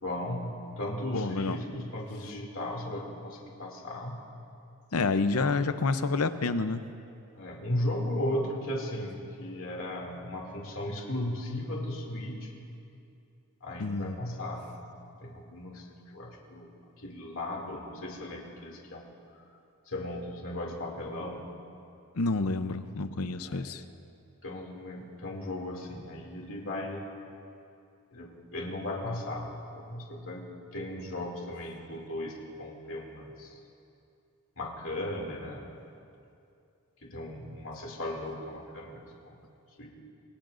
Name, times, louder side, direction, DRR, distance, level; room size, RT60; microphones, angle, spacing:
voice 1, 0.0-4.2 7.4-12.6 13.6-14.7 15.2-15.8 16.1-16.7 17.0-19.1 19.9-21.4 23.5-23.6 24.4-27.0 28.1-29.5 29.7-30.4 30.7-33.6 34.6-35.7 37.0-39.3 39.8-39.9, left 1 dB, 65° left, -2 dB, 2.6 m, -36 dB
voice 2, 1.1-1.6 4.9-6.8 13.8-14.2 22.2-23.8, left 3 dB, 85° left, 10 dB, 0.7 m, -28 dB
28.0 x 20.0 x 2.6 m, 2.6 s
head